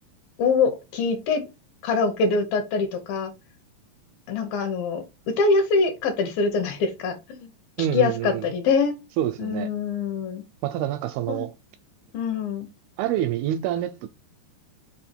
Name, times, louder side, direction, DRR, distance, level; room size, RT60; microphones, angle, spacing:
voice 1, 0.4-1.4 1.8-3.3 4.3-5.0 5.4-7.5 7.8-8.9 9.4-10.4 11.3-11.5 12.1-12.7, left 4 dB, 75° left, 2.4 m, -24 dB
voice 2, 7.8-8.5 9.2-9.7 10.6-11.5 13.0-14.1, right 11 dB, 85° right, 2.2 m, -27 dB
5.7 x 4.2 x 4.2 m
omnidirectional pair, 4.7 m